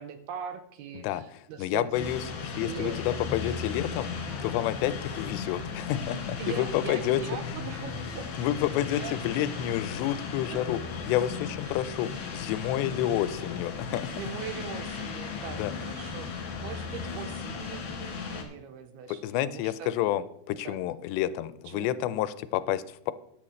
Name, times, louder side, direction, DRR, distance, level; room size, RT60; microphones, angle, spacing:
voice 1, 0.0-2.1 2.6-3.3 6.4-8.3 8.7-9.5 10.5-10.6 11.7-11.8 12.8-13.0 14.1-19.9 20.6-20.8 21.7-21.9, right 8 dB, 80° right, 8 dB, 2.6 m, -41 dB
voice 2, 1.6-2.2 2.6-4.1 4.4-7.2 7.5-7.6 8.4-10.8 11.1-14.1 15.6-15.7 19.1-23.1, left 12 dB, 90° left, 14 dB, 2.9 m, -29 dB
sound 1, 1.9-18.4, left 5 dB, 65° left, 3.7 m, -36 dB
14.5 x 10.0 x 3.2 m, 0.71 s
omnidirectional pair, 4.9 m